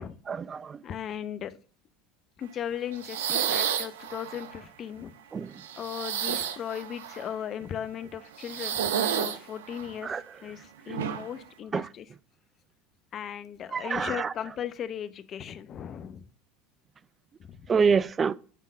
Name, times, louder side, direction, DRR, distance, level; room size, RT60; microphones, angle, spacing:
voice 1, 0.3-0.8 5.3-5.5 10.0-10.2 11.7-11.9 13.7-14.3 17.7-18.3, right 5 dB, 30° right, 0.4 m, -26 dB
voice 2, 0.8-1.6 2.4-5.1 5.8-12.1 13.1-16.3 17.4-17.7, left 9 dB, 45° left, 0.8 m, -37 dB
sound 1, 2.9-4.6 5.6-7.3 8.4-10.0 10.9-11.3, right 9 dB, 80° right, 0.7 m, -31 dB
10.0 x 3.7 x 5.3 m
hypercardioid pair, 80°, 0 cm